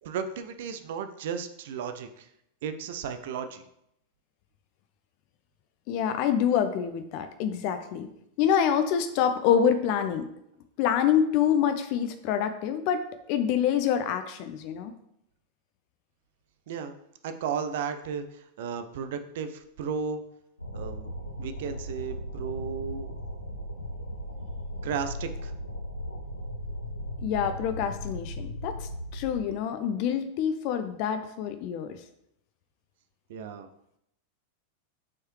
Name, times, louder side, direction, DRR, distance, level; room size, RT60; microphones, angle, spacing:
voice 1, 0.0-2.3 2.6-3.6 16.7-16.9 17.2-20.2 20.7-21.1 21.4-23.1 24.8-25.5 33.3-33.7, right 6 dB, 55° right, 9 dB, 0.5 m, -34 dB
voice 2, 5.9-8.1 8.4-10.3 10.8-13.0 13.3-14.9 27.2-32.0, left 8 dB, 45° left, 8 dB, 0.5 m, -26 dB
sound 1, 20.6-29.4, equal, 85° left, 0.8 m, -37 dB
8.4 x 4.7 x 3.2 m, 0.77 s
figure-of-eight pair, 90°, 0 cm